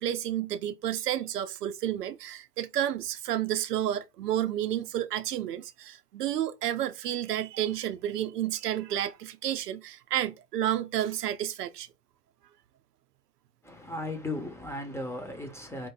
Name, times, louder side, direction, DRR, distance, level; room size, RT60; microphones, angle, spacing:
voice 1, 0.0-11.9, right 11 dB, 75° right, 0.6 m, -31 dB
voice 2, 13.6-15.9, left 2 dB, 5° left, 1.0 m, -36 dB
4.5 x 2.6 x 3.8 m
figure-of-eight pair, 75°, 48 cm